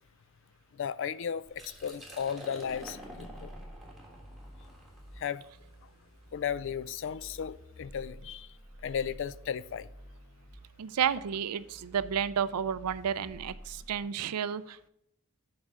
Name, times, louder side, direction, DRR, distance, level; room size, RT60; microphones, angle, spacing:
voice 1, 0.7-3.5 5.2-5.4 6.3-8.5 8.8-9.9, left 8 dB, 55° left, 0.3 m, -35 dB
Liquid, 1.5-7.2, right 1 dB, ahead, 1.5 m, -49 dB
sound 1, 2.6-14.0, equal, 90° left, 2.2 m, -51 dB
voice 2, 10.8-14.8, right 8 dB, 85° right, 0.4 m, -31 dB
7.2 x 4.8 x 6.4 m
head